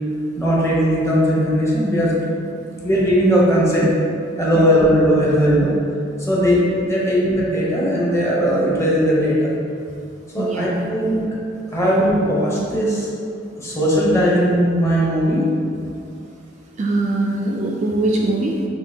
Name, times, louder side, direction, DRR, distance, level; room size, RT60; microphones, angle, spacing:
voice 1, 0.4-2.3 2.8-3.9 4.4-5.8 6.2-9.5 10.3-11.3 11.7-13.1 13.6-15.4, equal, 15° left, -5 dB, 0.8 m, -18 dB
voice 2, 10.4-10.9 11.7-11.8 16.8-18.6, right 2 dB, 35° right, -1 dB, 0.3 m, -22 dB
5.9 x 2.7 x 2.7 m, 2.4 s
head